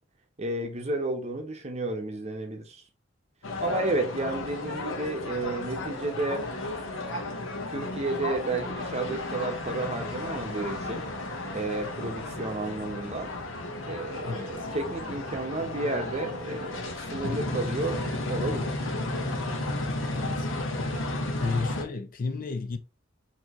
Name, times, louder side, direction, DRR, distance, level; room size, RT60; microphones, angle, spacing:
voice 1, 0.4-2.8 3.6-6.4 7.7-11.1 11.5-13.3 13.8-18.0 18.3-18.8 19.7-20.1, right 2 dB, 35° right, 0.8 m, -32 dB
sound 1, 3.4-21.8, left 2 dB, 75° left, 1.0 m, -33 dB
voice 2, 20.1-20.5 21.4-22.8, left 4 dB, 45° left, 0.5 m, -33 dB
4.5 x 2.8 x 2.9 m
head